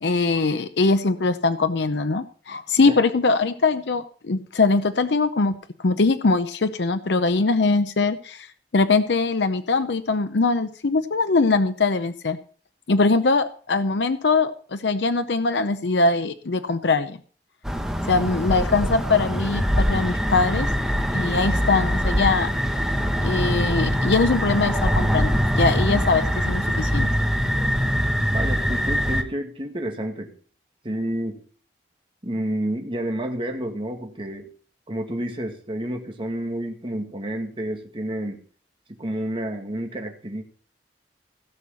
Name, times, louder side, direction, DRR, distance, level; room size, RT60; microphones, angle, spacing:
voice 1, 0.0-5.5 5.8-8.5 8.7-12.4 12.9-17.2 18.1-20.7 21.1-22.5 23.2-27.1, left 3 dB, 75° left, 10 dB, 0.7 m, -22 dB
sound 1, 17.6-29.2, equal, 5° right, 1.2 m, -23 dB
voice 2, 28.3-30.3 30.8-31.4 32.2-34.5 34.9-38.4 38.9-40.4, right 1 dB, 30° right, 3 dB, 2.0 m, -30 dB
16.5 x 6.4 x 5.7 m, 0.43 s
head